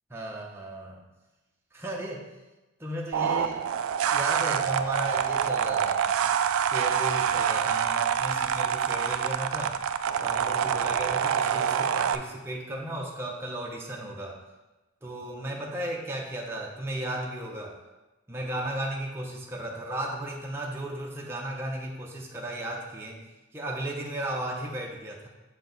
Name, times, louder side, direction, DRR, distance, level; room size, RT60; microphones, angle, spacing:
voice 1, 0.1-1.0 1.7-2.3 2.8-3.7 4.1-6.1 6.7-9.9 10.2-14.4 15.0-17.8 18.3-23.3 23.5-25.3, right 1 dB, 10° right, -2 dB, 0.6 m, -35 dB
sound 1, 3.1-12.2, right 8 dB, 90° right, 0.3 m, -26 dB
6.5 x 4.5 x 3.9 m, 1.1 s
head